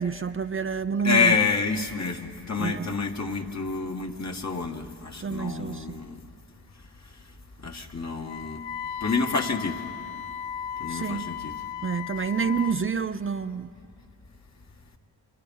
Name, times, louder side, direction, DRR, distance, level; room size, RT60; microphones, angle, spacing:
voice 1, 0.0-1.4 2.6-2.9 5.2-6.0 10.9-11.3 11.8-13.7, right 6 dB, 30° right, 9 dB, 0.7 m, -28 dB
voice 2, 1.0-6.2 7.6-8.6 9.0-9.8 10.8-11.5, left 4 dB, 40° left, 3 dB, 2.0 m, -28 dB
Wind instrument woodwind instrument, 8.2-12.8, left 9 dB, 85° left, 0.8 m, -36 dB
30.0 x 25.5 x 5.6 m, 2.2 s
cardioid pair, 55°, 43 cm